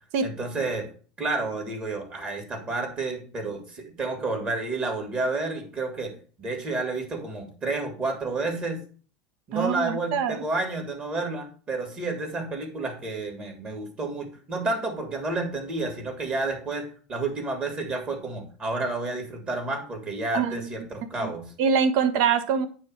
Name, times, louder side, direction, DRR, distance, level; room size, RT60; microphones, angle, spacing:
voice 1, 0.2-0.9 1.2-6.1 6.4-8.8 9.5-21.5, right 3 dB, 35° right, 3 dB, 2.9 m, -30 dB
voice 2, 9.5-10.4 20.3-20.7 21.2-21.3 21.6-22.7, right 6 dB, 60° right, 11 dB, 1.0 m, -24 dB
9.5 x 3.3 x 6.3 m, 0.41 s
hypercardioid pair, 85°, 4 cm